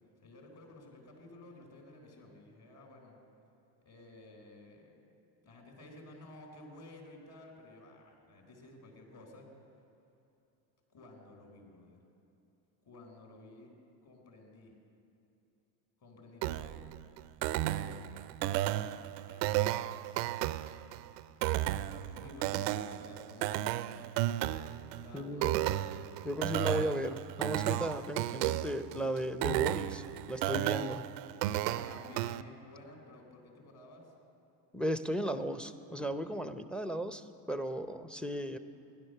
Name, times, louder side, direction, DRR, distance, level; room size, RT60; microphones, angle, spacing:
voice 1, 0.2-3.2 3.8-5.0 5.4-9.5 10.9-12.0 12.8-13.7 14.0-14.7 16.0-16.8 17.5-17.9 18.6-19.7 21.4-24.0 25.0-25.8 31.7-34.1, left 2 dB, 50° left, 2 dB, 4.3 m, -53 dB
sound 1, 16.4-32.4, right 14 dB, 75° right, 0.6 m, -34 dB
voice 2, 25.1-25.7 26.2-31.1 34.7-38.6, equal, ahead, 10 dB, 0.6 m, -36 dB
16.0 x 11.0 x 6.6 m, 2.8 s
hypercardioid pair, 80°, 50 cm